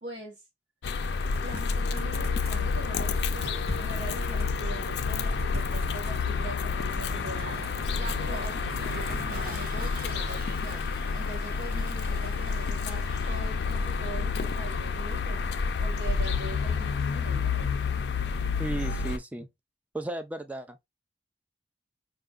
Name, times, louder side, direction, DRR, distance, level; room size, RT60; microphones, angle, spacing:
voice 1, 0.0-0.4 1.4-7.6 7.9-10.8 11.1-15.4 15.8-17.8, right 1 dB, 85° right, 0.9 m, -42 dB
sound 1, 0.8-19.2, left 5 dB, 70° left, 0.4 m, -29 dB
sound 2, 1.3-2.7 3.0-4.5 4.9-6.3 6.8-8.2 8.5-10.3, left 1 dB, 40° right, 2.3 m, -41 dB
Toilet flush, 7.2-14.0, right 2 dB, 55° right, 1.2 m, -45 dB
voice 2, 18.6-19.5 19.9-20.8, right 1 dB, 10° right, 0.3 m, -34 dB
4.5 x 2.3 x 2.4 m
head